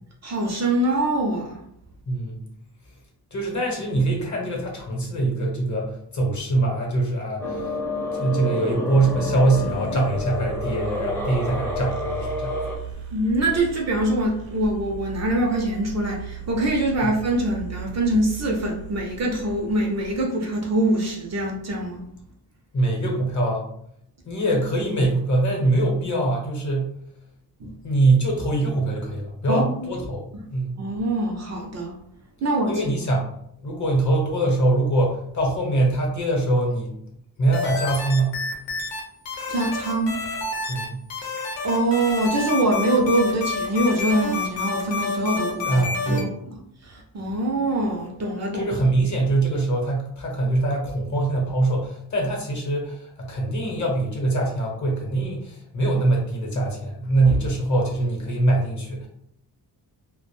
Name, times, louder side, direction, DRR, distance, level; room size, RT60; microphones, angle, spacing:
voice 1, 0.2-1.6 13.1-22.0 27.6-27.7 29.5-29.9 30.8-31.9 32.4-32.9 39.5-40.2 41.6-48.6, right 1 dB, 40° right, 0 dB, 0.5 m, -24 dB
voice 2, 2.1-2.4 3.3-7.7 8.1-12.6 22.7-23.7 24.2-26.9 27.8-30.2 30.5-30.8 32.7-33.3 33.6-36.9 37.4-38.4 40.7-41.0 45.6-46.3 48.5-59.1, right 2 dB, 45° left, -1 dB, 0.8 m, -23 dB
sound 1, 7.4-12.8, left 1 dB, 5° left, 0.5 m, -29 dB
sound 2, 8.9-20.2, right 8 dB, 80° right, 0.7 m, -37 dB
sound 3, 37.5-39.0 39.3-40.8 41.1-46.2, left 3 dB, 90° left, 0.8 m, -28 dB
2.4 x 2.1 x 3.0 m, 0.73 s
wide cardioid pair, 120°, 42 cm